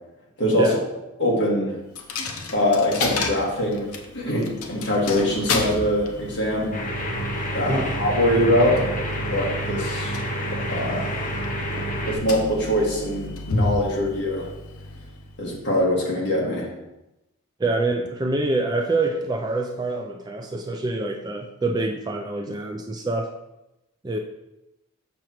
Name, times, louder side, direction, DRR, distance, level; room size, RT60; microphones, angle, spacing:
voice 1, 0.4-0.8 1.2-1.8 2.5-6.7 7.5-8.9 9.3-10.2 10.7-11.1 12.1-14.5 15.4-16.7, left 1 dB, 50° left, -4 dB, 1.8 m, -23 dB
Coin (dropping), 2.0-15.7, left 3 dB, 75° left, 0.7 m, -32 dB
sound 1, 6.7-12.2, equal, 35° left, 0.9 m, -28 dB
voice 2, 17.6-23.3 24.0-24.2, right 2 dB, 20° right, 3 dB, 0.3 m, -26 dB
6.4 x 6.0 x 3.0 m, 0.94 s
head